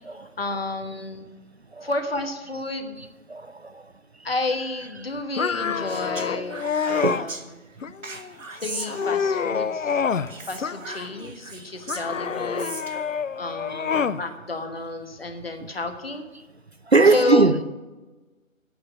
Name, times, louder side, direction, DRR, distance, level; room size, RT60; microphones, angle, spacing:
voice 1, 0.2-1.3 1.8-3.0 4.2-7.4 8.6-10.0 10.5-12.7 13.4-16.3 17.1-17.5, left 2 dB, 45° left, 7 dB, 1.3 m, -31 dB
voice 2, 3.0-3.8 4.8-5.1 7.0-7.2 13.7-13.8 16.9-17.6, right 3 dB, 50° right, 13 dB, 0.5 m, -21 dB
sound 1, 5.4-7.3 7.8-8.3 8.7-10.3 10.6-11.3 11.9-14.2, left 6 dB, 65° left, 0.6 m, -27 dB
Speech, 5.9-7.4 8.0-9.5 10.3-13.1, right 3 dB, 70° right, 1.6 m, -38 dB
8.6 x 6.4 x 8.0 m, 1.2 s
figure-of-eight pair, 160°, 41 cm